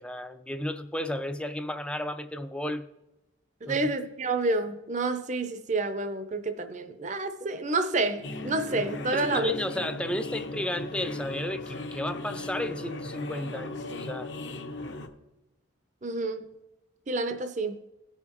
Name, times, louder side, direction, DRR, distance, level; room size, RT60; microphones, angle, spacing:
voice 1, 0.0-2.9 3.7-3.9 9.1-14.3, left 1 dB, 5° left, 0.3 m, -33 dB
voice 2, 3.6-9.5 16.0-16.4 17.1-17.8, right 2 dB, 35° right, 0.6 m, -29 dB
sound 1, 8.2-15.1, left 2 dB, 60° left, 0.9 m, -37 dB
17.0 x 5.7 x 3.0 m
head